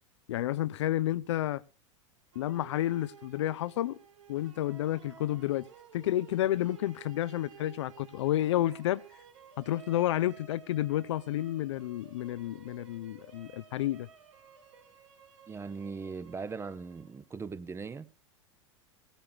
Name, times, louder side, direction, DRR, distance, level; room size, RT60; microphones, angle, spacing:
voice 1, 0.3-1.6 2.4-4.0 4.3-5.6 5.9-9.0 9.6-14.1, left 13 dB, 65° left, 0.5 m, -30 dB
sound 1, 2.3-17.4, right 7 dB, 70° right, 2.9 m, -55 dB
voice 2, 15.5-18.1, right 5 dB, 15° right, 0.8 m, -39 dB
17.5 x 14.5 x 2.7 m
figure-of-eight pair, 90°, 16 cm